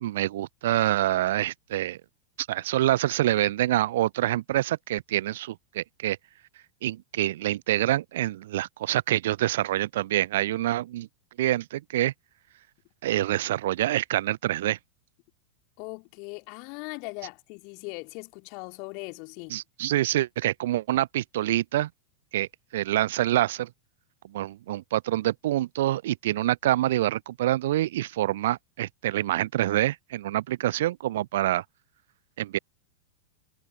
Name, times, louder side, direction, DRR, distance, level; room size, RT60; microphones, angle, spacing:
voice 1, 0.0-2.0 2.5-6.2 6.8-11.1 11.4-12.1 13.0-14.8 19.5-21.9 22.3-23.7 24.3-31.6 32.4-32.6, right 14 dB, 55° right, 0.3 m, -26 dB
voice 2, 15.8-19.6, left 35 dB, 45° left, 2.5 m, -39 dB
figure-of-eight pair, 90°, 0 cm